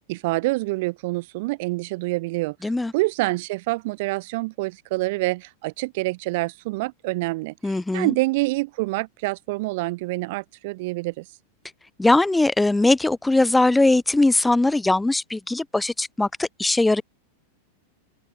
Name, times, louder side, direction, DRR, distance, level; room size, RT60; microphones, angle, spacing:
voice 1, 0.1-2.6 2.9-11.2, right 22 dB, 50° right, 2.1 m, -26 dB
voice 2, 2.6-2.9 7.6-8.1 12.0-17.0, left 2 dB, 5° left, 0.5 m, -20 dB
figure-of-eight pair, 90°, 0 cm